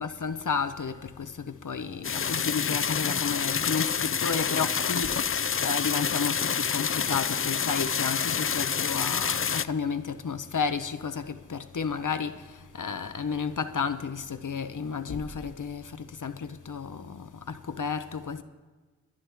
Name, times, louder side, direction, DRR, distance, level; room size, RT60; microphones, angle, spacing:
voice 1, 0.0-18.4, left 5 dB, 85° left, 0.8 m, -32 dB
sound 1, 2.0-9.6, left 7 dB, 45° left, 0.4 m, -28 dB
22.5 x 11.0 x 3.5 m
wide cardioid pair, 50°, 30 cm